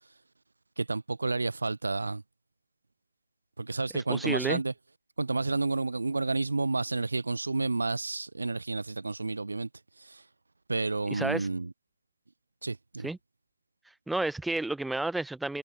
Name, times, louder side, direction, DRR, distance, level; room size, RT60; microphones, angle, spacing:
voice 1, 0.8-2.2 3.6-4.7 5.2-9.7 10.0-10.2 10.7-11.7 12.6-13.1, right 3 dB, 85° right, 1.3 m, -30 dB
voice 2, 4.1-4.6 11.1-11.5 13.0-13.2 14.1-15.6, right 2 dB, ahead, 0.4 m, -31 dB
hypercardioid pair, 165°, 0 cm